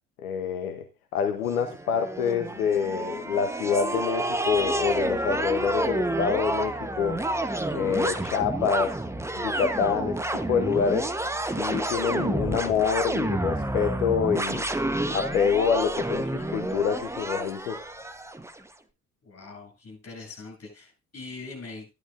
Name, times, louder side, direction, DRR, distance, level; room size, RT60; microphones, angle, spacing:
voice 1, 0.2-0.8 1.1-7.2 7.7-9.0 9.4-10.2 10.5-11.1 11.6-14.7 15.1-17.8, left 7 dB, 75° left, 6 dB, 1.0 m, -26 dB
sound 1, 1.5-18.6, right 1 dB, 5° right, 1.0 m, -29 dB
voice 2, 19.2-21.9, left 3 dB, 35° left, 1 dB, 7.9 m, -42 dB
13.5 x 11.5 x 2.5 m, 0.28 s
figure-of-eight pair, 55°, 44 cm